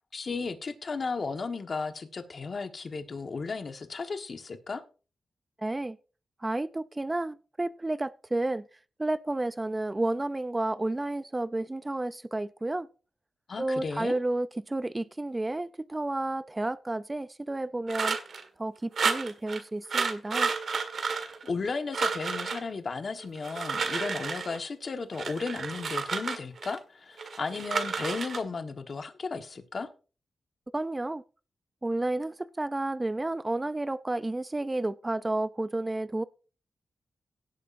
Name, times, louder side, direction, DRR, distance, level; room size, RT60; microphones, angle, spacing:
voice 1, 0.1-4.8 13.5-14.2 21.4-29.9, left 4 dB, 50° left, 1.4 m, -34 dB
voice 2, 5.6-6.0 6.4-8.7 9.0-12.9 13.6-18.2 18.6-20.5 30.7-31.2 31.8-36.2, right 2 dB, 20° right, 0.5 m, -31 dB
sound 1, 17.9-18.4 19.0-19.6 19.9-21.7 21.9-22.6 23.4-24.6 25.1-26.8 27.2-28.4, right 5 dB, 65° right, 1.7 m, -31 dB
17.5 x 8.3 x 2.6 m
cardioid pair, 80°, 0 cm